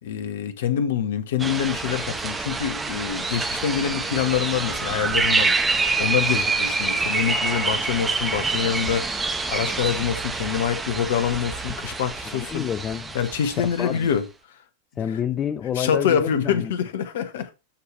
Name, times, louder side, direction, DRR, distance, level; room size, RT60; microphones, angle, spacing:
voice 1, 0.0-5.5 6.0-9.1 9.5-12.6 13.1-14.2 15.8-17.5, left 8 dB, 55° left, 1.1 m, -25 dB
sound 1, 1.4-14.0, right 3 dB, 15° right, 1.4 m, -26 dB
voice 2, 12.3-13.2 13.8-14.1 15.0-16.7, left 9 dB, 25° left, 0.5 m, -29 dB
13.0 x 4.7 x 3.2 m
figure-of-eight pair, 90°, 0 cm